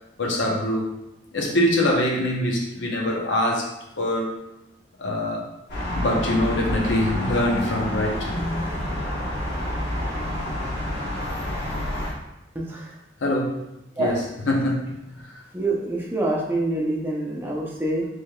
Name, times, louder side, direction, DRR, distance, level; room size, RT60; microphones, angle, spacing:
voice 1, 0.2-0.9 1.3-3.7 4.0-4.3 5.0-5.5 5.9-8.3 13.2-13.6 14.0-14.2 14.5-15.4, left 1 dB, 85° left, -1 dB, 0.8 m, -24 dB
sound 1, 5.7-12.1, left 1 dB, 70° left, 1.2 m, -28 dB
voice 2, 12.5-12.9 14.0-14.1 15.5-18.1, right 1 dB, 10° right, -4 dB, 0.6 m, -26 dB
4.6 x 3.2 x 2.3 m, 0.89 s
head